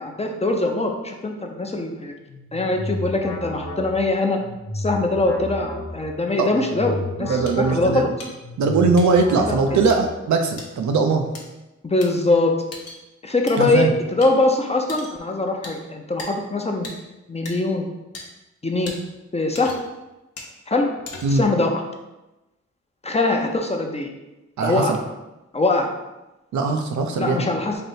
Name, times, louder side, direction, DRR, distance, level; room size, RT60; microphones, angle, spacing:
voice 1, 0.0-2.1 2.5-4.4 4.7-8.1 9.4-9.6 11.8-12.6 13.2-16.9 17.3-17.9 18.6-18.9 19.3-19.7 20.7-20.9 21.3-21.8 23.0-24.1 24.6-25.0 25.5-25.9 27.2-27.8, left 2 dB, 20° left, 2 dB, 0.6 m, -22 dB
sound 1, 2.2-10.3, left 2 dB, 40° left, 1.3 m, -33 dB
voice 2, 7.2-8.1 8.6-11.3 13.6-13.9 21.2-21.4 24.6-25.0 26.5-27.5, right 4 dB, 80° right, 4 dB, 0.5 m, -20 dB
sound 2, 7.5-7.6 8.2-8.3 9.0-9.2 9.9-10.0 10.6-10.7 11.3-11.4 12.0-12.1 12.7-13.0 13.5-13.6 14.2-14.3 14.9-15.2 15.6-15.8 16.2-16.3 16.8-17.0 17.5-17.6 18.1-18.2 18.9-19.0 19.5-19.9 20.4-20.5 21.1-21.5, left 2 dB, 55° left, 0.9 m, -37 dB
3.3 x 2.7 x 4.2 m, 1.0 s
cardioid pair, 60°, 29 cm